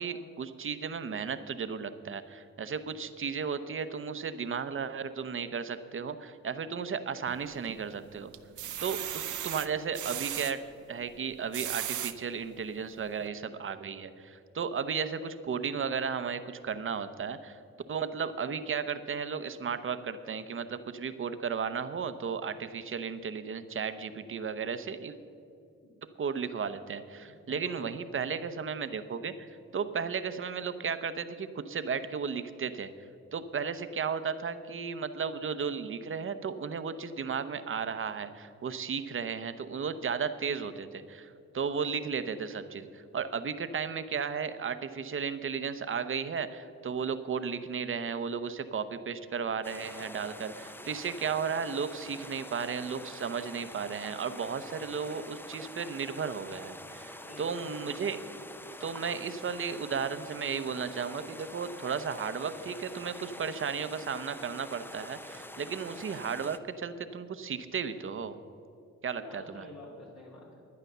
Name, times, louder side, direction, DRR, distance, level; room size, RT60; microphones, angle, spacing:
voice 1, 0.0-8.3 8.8-17.6 17.9-25.2 26.2-29.5 29.7-32.9 33.3-58.2 58.8-68.4 69.0-69.6, right 6 dB, 45° right, 11 dB, 0.8 m, -34 dB
sound 1, 7.3-7.9 8.3-10.5 11.3-12.1 12.8-12.9 13.2-13.3, right 11 dB, 75° right, 0.7 m, -36 dB
voice 2, 27.5-27.9 57.2-57.9 69.1-70.6, left 2 dB, 60° left, -2 dB, 2.0 m, -48 dB
sound 2, 49.6-66.6, left 1 dB, 5° left, 0.5 m, -46 dB
11.5 x 9.7 x 6.7 m, 2.6 s
cardioid pair, 95°, 30 cm